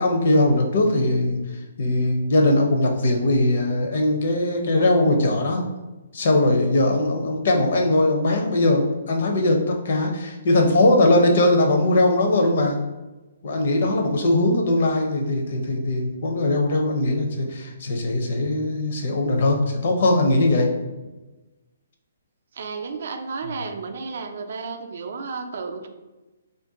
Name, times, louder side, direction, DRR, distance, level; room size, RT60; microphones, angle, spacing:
voice 1, 0.0-1.4 1.8-5.6 6.1-12.8 13.4-20.7, left 1 dB, 55° left, 2 dB, 0.6 m, -20 dB
voice 2, 22.5-25.9, right 4 dB, 60° right, 6 dB, 0.3 m, -32 dB
2.5 x 2.2 x 3.7 m, 1.1 s
hypercardioid pair, 165°, 0 cm